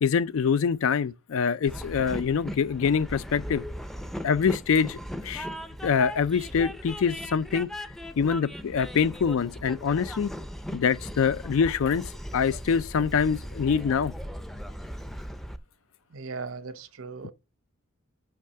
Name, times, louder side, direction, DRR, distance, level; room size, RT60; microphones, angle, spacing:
voice 1, 0.0-3.6 4.2-5.0 5.2-5.5 5.8-7.7 8.2-10.3 10.7-14.1, left 6 dB, 75° left, 0.4 m, -25 dB
Train, 1.7-15.6, equal, ahead, 0.5 m, -38 dB
voice 2, 16.1-17.3, right 4 dB, 70° right, 0.8 m, -38 dB
5.9 x 5.6 x 6.4 m
head